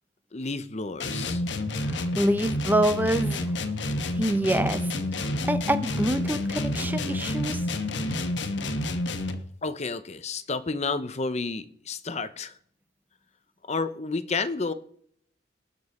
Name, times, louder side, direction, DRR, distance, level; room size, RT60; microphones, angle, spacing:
voice 1, 0.3-1.4 9.6-12.5 13.7-14.7, left 4 dB, 35° left, 0.7 m, -31 dB
sound 1, 1.0-9.5, left 1 dB, 65° left, 1.3 m, -29 dB
voice 2, 1.8-3.5 4.1-4.9 5.5-7.6, right 1 dB, 10° right, 0.7 m, -26 dB
19.5 x 7.0 x 4.3 m
head